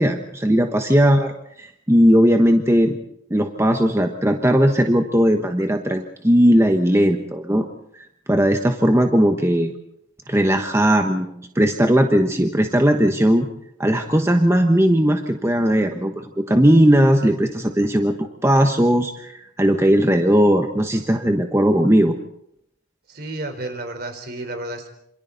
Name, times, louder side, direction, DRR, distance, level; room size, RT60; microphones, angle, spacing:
voice 1, 0.0-1.3 1.6-3.0 3.3-7.6 8.0-9.7 10.3-13.5 13.8-22.2, equal, 15° right, 5 dB, 1.2 m, -18 dB
voice 2, 23.1-24.9, right 2 dB, 55° right, 6 dB, 4.1 m, -31 dB
27.5 x 27.0 x 4.1 m, 0.73 s
head